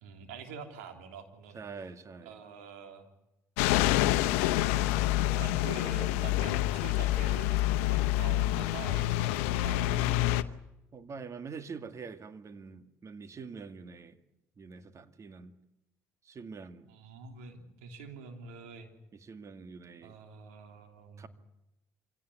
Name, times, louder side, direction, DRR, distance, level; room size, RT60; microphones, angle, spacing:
voice 1, 0.0-1.6 2.2-3.1 4.3-10.0 16.9-18.9 20.0-21.3, right 6 dB, 85° right, 6 dB, 3.2 m, -46 dB
voice 2, 1.5-2.3 4.7-5.5 9.9-10.4 10.9-14.2 14.6-15.5 16.2-16.9 19.1-20.2 21.2-21.3, right 5 dB, 45° right, 10 dB, 2.2 m, -45 dB
sound 1, 3.6-10.4, left 15 dB, 80° left, 0.8 m, -27 dB
25.5 x 17.5 x 9.8 m, 0.94 s
hypercardioid pair, 60°, 7 cm